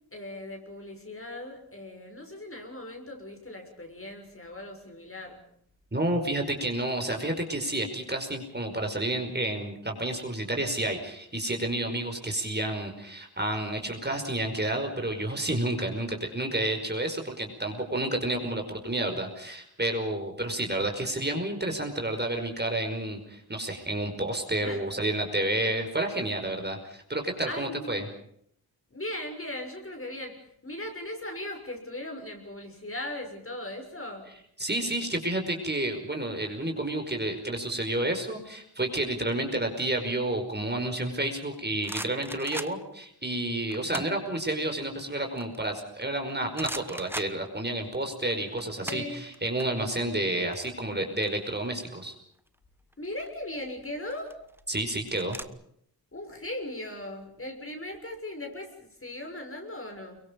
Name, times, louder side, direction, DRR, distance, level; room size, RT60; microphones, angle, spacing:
voice 1, 0.1-5.4 24.6-24.8 27.5-28.1 28.9-34.3 48.8-49.2 53.0-54.4 56.1-60.2, left 1 dB, 35° left, 3 dB, 6.6 m, -38 dB
voice 2, 5.9-28.1 34.6-52.1 54.7-55.4, right 1 dB, 25° right, 4 dB, 5.3 m, -30 dB
sound 1, 41.4-43.0 43.7-44.2 44.6-46.2 46.5-47.9 48.2-49.7 49.9-50.1 50.4-51.9 52.9-53.3 54.0-55.4, right 1 dB, 5° right, 1.3 m, -40 dB
30.0 x 23.5 x 5.4 m, 0.69 s
wide cardioid pair, 100°, 37 cm